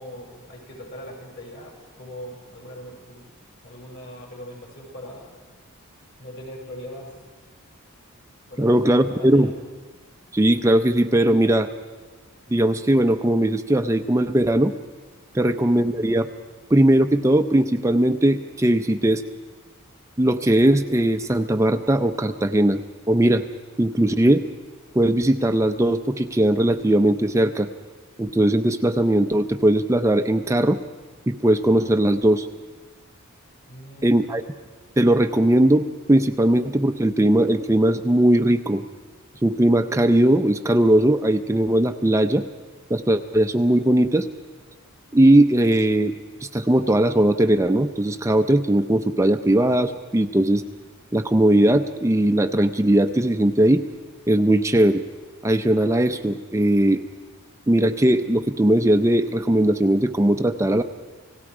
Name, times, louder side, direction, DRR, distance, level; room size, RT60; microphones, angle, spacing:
voice 1, 0.0-3.3 3.6-5.3 6.2-7.2 8.5-9.6 33.7-34.3, equal, 55° left, -1 dB, 7.2 m, -40 dB
voice 2, 8.6-9.5 10.3-11.7 12.5-14.7 15.3-16.3 16.7-19.2 20.2-22.8 23.1-23.4 23.8-24.4 24.9-27.7 28.2-30.8 31.3-32.5 34.0-34.4 35.0-38.8 39.4-42.5 42.9-44.3 45.1-46.1 46.4-50.6 51.1-53.8 54.3-55.0 55.4-57.0 57.7-60.8, right 1 dB, 15° right, 7 dB, 0.5 m, -19 dB
29.0 x 18.5 x 4.9 m, 1.4 s
head